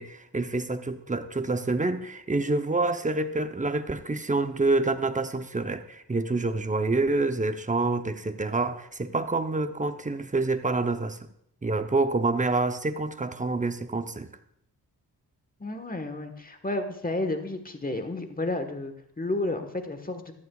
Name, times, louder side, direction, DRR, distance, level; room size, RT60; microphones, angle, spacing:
voice 1, 0.0-11.2 11.6-14.3, right 3 dB, 20° right, 0.8 m, -27 dB
voice 2, 15.6-20.3, left 2 dB, 20° left, 1.3 m, -31 dB
14.5 x 9.6 x 2.4 m
cardioid pair, 60°, 40 cm